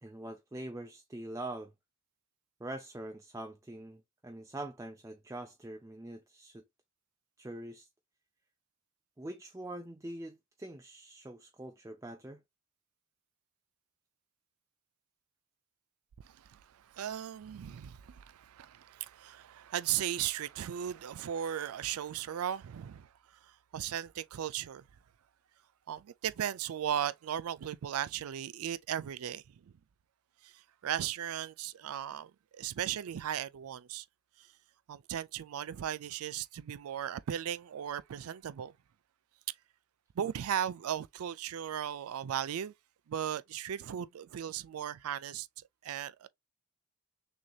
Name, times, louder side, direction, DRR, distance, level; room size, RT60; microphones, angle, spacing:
voice 1, 0.0-1.7 2.6-6.6 7.4-7.9 9.2-12.4, right 1 dB, 15° right, 0.4 m, -44 dB
voice 2, 16.2-24.9 25.9-29.7 30.4-34.1 34.4-34.5 34.9-38.8 40.2-42.7 43.1-46.3, right 10 dB, 90° right, 0.4 m, -37 dB
6.2 x 2.8 x 2.3 m
head